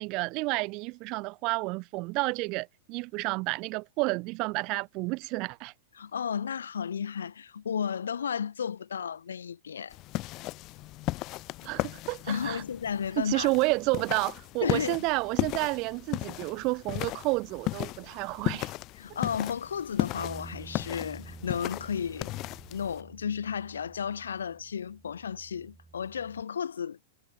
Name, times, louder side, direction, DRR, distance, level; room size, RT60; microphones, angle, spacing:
voice 1, 0.0-5.7 11.6-12.6 13.2-18.7, right 25 dB, 40° right, 0.5 m, -30 dB
voice 2, 5.9-10.0 12.3-13.5 14.6-14.9 19.0-22.3 22.7-27.0, left 7 dB, 75° left, 1.4 m, -33 dB
sound 1, 9.9-23.0, left 19 dB, 40° left, 1.2 m, -36 dB
sound 2, 20.2-26.4, right 3 dB, 10° right, 1.7 m, -49 dB
figure-of-eight pair, 100°, 0 cm